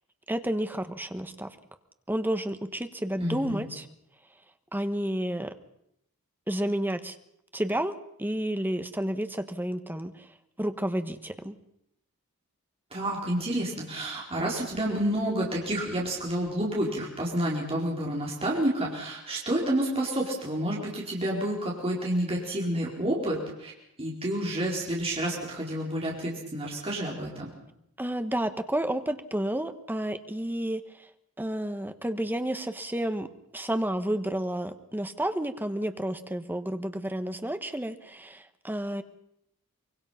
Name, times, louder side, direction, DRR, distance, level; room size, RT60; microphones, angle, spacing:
voice 1, 0.3-1.5 2.1-3.9 4.7-5.5 6.5-7.2 7.5-10.3 10.6-11.6 28.0-31.1 31.4-39.0, right 1 dB, 10° right, 9 dB, 1.1 m, -31 dB
voice 2, 3.2-3.6 12.9-23.7 24.0-27.5, right 1 dB, 25° right, -3 dB, 4.3 m, -29 dB
24.5 x 23.0 x 5.7 m, 0.76 s
head